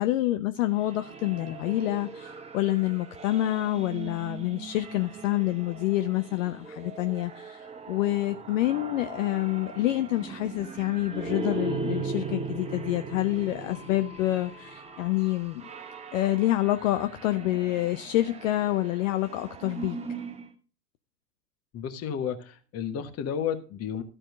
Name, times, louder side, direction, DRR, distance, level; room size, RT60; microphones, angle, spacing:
voice 1, 0.0-7.6 7.9-15.7 16.1-20.0, left 15 dB, 50° left, 0.7 m, -27 dB
sound 1, 0.7-20.5, right 4 dB, 15° right, 0.9 m, -39 dB
voice 2, 21.7-24.0, left 8 dB, 30° left, 1.3 m, -32 dB
13.0 x 4.5 x 6.3 m
figure-of-eight pair, 95°, 49 cm